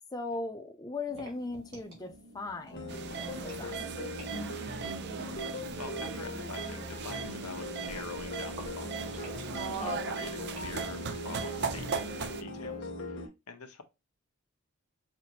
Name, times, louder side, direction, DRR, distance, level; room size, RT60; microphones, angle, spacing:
voice 1, 0.1-4.5 9.8-10.7, left 3 dB, 15° left, 0.5 m, -40 dB
sound 1, 1.1-12.8, right 1 dB, 65° right, 2.2 m, -53 dB
sound 2, 2.7-13.3, left 1 dB, 55° left, 1.0 m, -40 dB
sound 3, 2.9-12.4, right 5 dB, 50° right, 0.5 m, -38 dB
voice 2, 5.8-8.9 9.8-13.8, left 4 dB, 85° left, 0.9 m, -45 dB
5.7 x 3.0 x 2.5 m
head